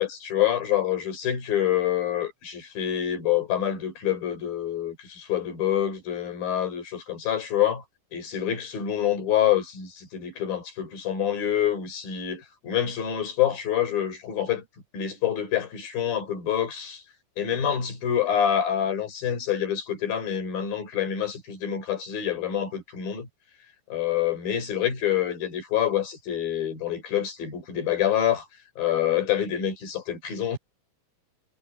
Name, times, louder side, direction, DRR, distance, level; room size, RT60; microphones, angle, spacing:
voice 1, 0.0-7.8 8.1-14.6 14.9-17.0 17.4-23.3 23.9-28.4 28.8-30.6, left 10 dB, 75° left, 6.3 m, -26 dB
omnidirectional pair, 4.1 m